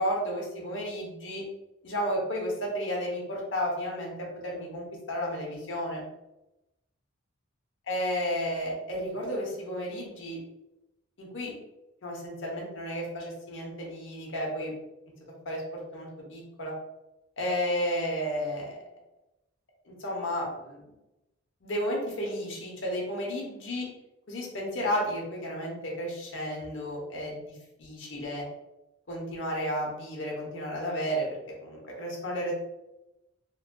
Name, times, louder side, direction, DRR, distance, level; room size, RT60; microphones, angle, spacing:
voice 1, 0.0-1.4 1.8-4.1 4.4-6.0 7.9-10.4 11.2-11.5 12.0-14.7 15.4-16.7 17.4-18.8 19.9-20.8 21.6-23.9 24.3-27.5 27.8-28.4 29.1-31.3 31.6-32.5, equal, 60° left, -2 dB, 0.9 m, -32 dB
3.0 x 2.7 x 2.2 m, 0.95 s
head